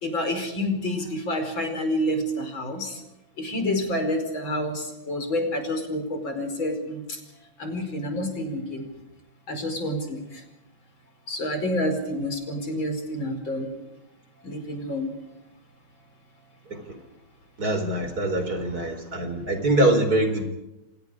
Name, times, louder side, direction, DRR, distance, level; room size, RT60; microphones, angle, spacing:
voice 1, 0.0-3.0 3.4-7.2 7.6-8.9 9.5-10.4 11.3-13.7 14.4-15.1, left 1 dB, 75° left, 6 dB, 5.7 m, -28 dB
voice 2, 17.6-20.4, right 1 dB, 50° right, 6 dB, 4.8 m, -23 dB
30.0 x 26.5 x 5.0 m, 0.92 s
omnidirectional pair, 2.2 m